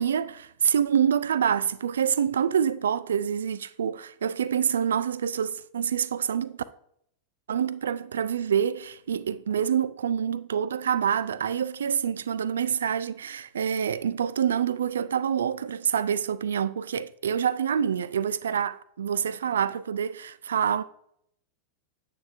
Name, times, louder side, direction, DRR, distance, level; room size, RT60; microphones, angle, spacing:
voice 1, 0.0-6.6 7.5-20.8, right 8 dB, 65° right, 0.3 m, -26 dB
9.0 x 6.3 x 2.5 m
figure-of-eight pair, 90°, 0 cm